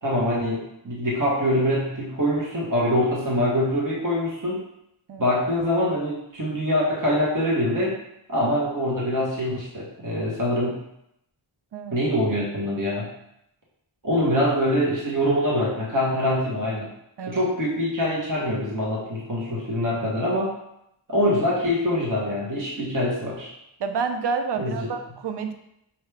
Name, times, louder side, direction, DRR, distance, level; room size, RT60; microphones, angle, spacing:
voice 1, 0.0-4.6 5.2-7.9 8.3-10.8 11.9-13.1 14.0-16.9 17.3-20.5 21.1-23.5 24.6-24.9, equal, 40° right, -5 dB, 1.3 m, -24 dB
voice 2, 23.8-25.5, right 5 dB, 60° right, 7 dB, 0.5 m, -29 dB
5.6 x 2.8 x 3.4 m, 0.79 s
wide cardioid pair, 90°, 48 cm